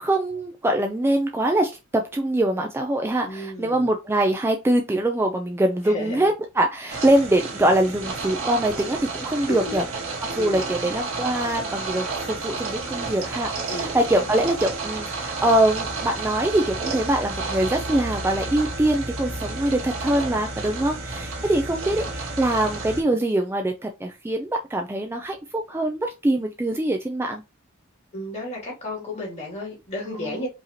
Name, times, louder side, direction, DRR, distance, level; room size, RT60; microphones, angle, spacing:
voice 1, 0.0-9.8 10.3-27.4 30.1-30.5, right 1 dB, 10° right, 0.3 m, -23 dB
voice 2, 3.2-3.9 5.8-6.3 6.9-7.0 9.5-9.8 10.4-10.7 13.7-14.3 20.7-21.2 28.1-30.5, left 1 dB, 30° left, 2.5 m, -33 dB
sound 1, 6.9-23.0, right 3 dB, 90° right, 1.8 m, -31 dB
4.8 x 3.0 x 2.8 m
head